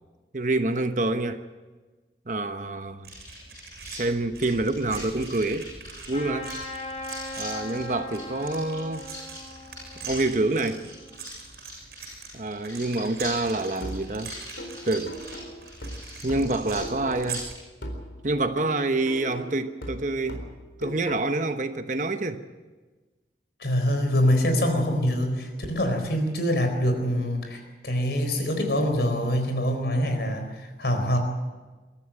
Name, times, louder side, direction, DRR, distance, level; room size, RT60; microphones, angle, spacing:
voice 1, 0.3-1.4 2.3-3.1 3.9-5.7 6.1-6.5 7.4-9.1 10.0-10.9 12.3-14.4 14.8-15.1 16.2-17.4 18.2-20.4 20.8-22.4, right 2 dB, 45° right, 8 dB, 1.0 m, -27 dB
sound 1, 3.0-17.6, right 2 dB, 60° right, 7.3 m, -40 dB
Trumpet, 6.1-11.2, left 2 dB, 35° left, 5.0 m, -39 dB
sound 2, 13.8-17.5 17.8-21.5, equal, 85° left, 4.2 m, -39 dB
voice 2, 23.6-31.2, equal, 70° left, 5 dB, 4.2 m, -25 dB
22.5 x 13.5 x 9.0 m, 1.3 s
head